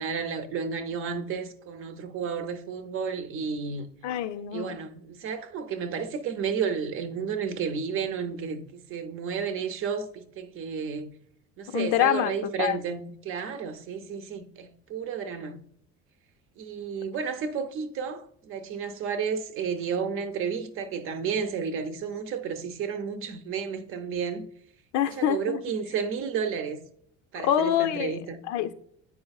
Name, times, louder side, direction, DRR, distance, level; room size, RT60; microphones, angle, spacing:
voice 1, 0.0-3.9 4.5-11.1 11.6-15.6 16.6-24.5 25.1-26.8 27.3-28.4, right 6 dB, 45° right, 0.6 m, -32 dB
voice 2, 4.0-4.8 11.7-12.8 24.9-25.6 27.4-28.2 28.5-28.7, left 11 dB, 75° left, 0.6 m, -26 dB
8.6 x 4.9 x 2.3 m
cardioid pair, 165°, 29 cm